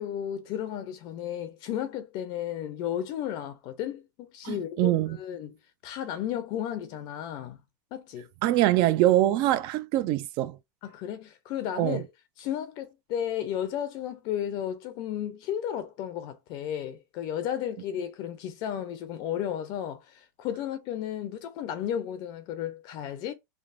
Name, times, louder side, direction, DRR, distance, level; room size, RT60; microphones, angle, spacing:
voice 1, 0.0-5.6 5.8-7.6 7.9-8.3 10.8-12.1 12.4-23.3, left 10 dB, 50° left, 0.5 m, -33 dB
voice 2, 4.4-5.2 8.4-10.6 11.8-12.0, right 14 dB, 50° right, 0.3 m, -24 dB
3.3 x 2.0 x 2.4 m
supercardioid pair, 125°, 10 cm